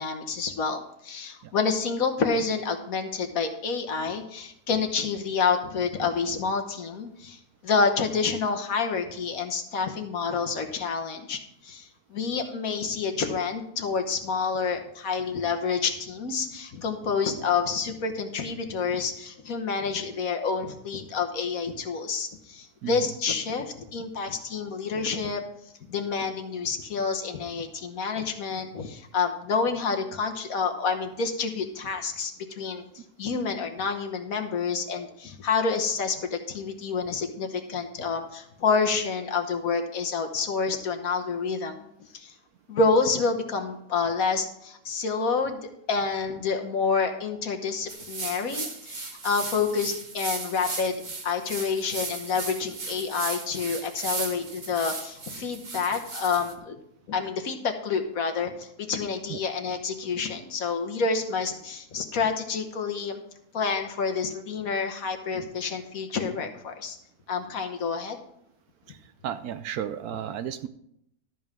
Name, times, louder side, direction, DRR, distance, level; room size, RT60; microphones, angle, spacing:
voice 1, 0.0-25.4 25.9-32.8 33.2-41.9 42.1-42.3 42.7-50.9 51.2-56.8 57.1-63.2 63.5-67.0 67.3-68.2, left 5 dB, 60° left, 5 dB, 1.4 m, -28 dB
voice 2, 22.8-23.1 59.3-59.4 68.9-69.0 69.2-70.7, right 9 dB, 70° right, 12 dB, 1.0 m, -33 dB
sound 1, 47.9-56.5, right 3 dB, 30° right, 1.0 m, -36 dB
13.0 x 5.4 x 6.1 m, 0.76 s
omnidirectional pair, 1.8 m